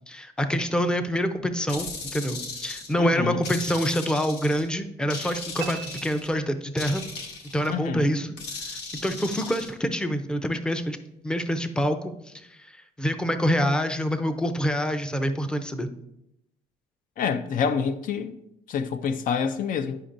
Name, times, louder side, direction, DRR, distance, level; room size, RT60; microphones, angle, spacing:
voice 1, 0.1-7.0 7.5-8.4 8.7-11.0 11.2-15.9, equal, 5° left, 0.5 m, -26 dB
sound 1, 1.7-3.0 3.4-4.7 5.1-6.3 6.8-7.7 8.4-9.7, left 3 dB, 80° left, 1.2 m, -37 dB
voice 2, 3.0-3.4 7.7-8.1 17.2-18.4 18.7-20.0, left 6 dB, 55° left, 0.4 m, -27 dB
sound 2, 5.6-7.1, right 13 dB, 85° right, 0.4 m, -40 dB
9.8 x 5.2 x 2.6 m
cardioid pair, 110°, 17 cm